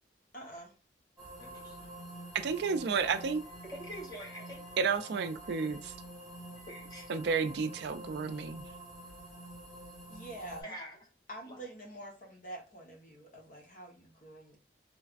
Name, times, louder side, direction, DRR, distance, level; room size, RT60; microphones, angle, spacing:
voice 1, 0.3-0.7 10.1-10.7 11.3-14.6, right 1 dB, 50° left, 1.1 m, -46 dB
sound 1, 1.2-10.6, right 1 dB, ahead, 1.9 m, -48 dB
voice 2, 1.4-1.9 3.6-4.8 5.5-5.8 6.6-7.1 9.0-9.1 10.6-11.0 11.4-11.6, equal, 25° left, 1.1 m, -46 dB
voice 3, 2.3-3.4 4.8-5.9 7.1-8.6, right 5 dB, 70° right, 0.4 m, -31 dB
3.2 x 3.1 x 2.4 m
head